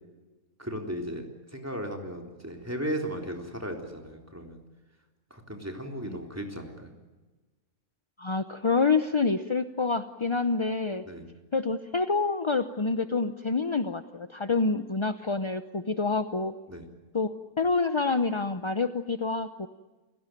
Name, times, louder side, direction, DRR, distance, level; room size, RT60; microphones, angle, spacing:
voice 1, 0.6-4.6 5.3-6.9 11.0-11.3 16.7-16.9, equal, 10° right, 2 dB, 3.6 m, -36 dB
voice 2, 8.2-11.0 11.5-16.5 17.1-17.3 17.6-19.7, left 4 dB, 30° left, 9 dB, 0.5 m, -27 dB
29.5 x 17.0 x 9.2 m, 1.2 s
omnidirectional pair, 1.6 m